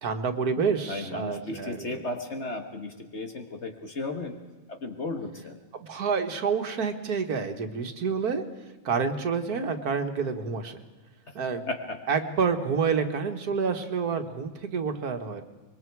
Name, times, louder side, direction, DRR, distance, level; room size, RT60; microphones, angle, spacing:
voice 1, 0.0-2.0 5.8-8.4 8.9-10.8 11.4-11.7 12.1-15.4, right 5 dB, 80° right, 6 dB, 2.0 m, -28 dB
voice 2, 0.6-4.4 4.7-5.6 11.3-11.4 11.7-12.0, left 2 dB, 50° left, 5 dB, 1.7 m, -35 dB
25.5 x 22.5 x 4.7 m, 1.3 s
omnidirectional pair, 1.6 m